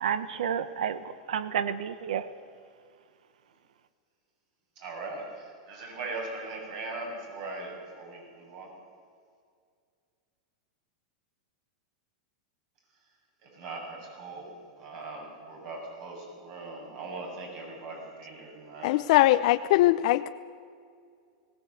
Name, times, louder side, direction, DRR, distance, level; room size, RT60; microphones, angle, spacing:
voice 1, 0.0-2.3, right 8 dB, 85° right, 14 dB, 0.9 m, -30 dB
voice 2, 4.8-8.7 13.4-14.5 14.8-19.0, right 3 dB, 55° right, 1 dB, 7.1 m, -40 dB
voice 3, 18.8-20.3, left 16 dB, 60° left, 11 dB, 0.5 m, -21 dB
19.0 x 18.0 x 8.1 m, 2.2 s
supercardioid pair, 135°, 4 cm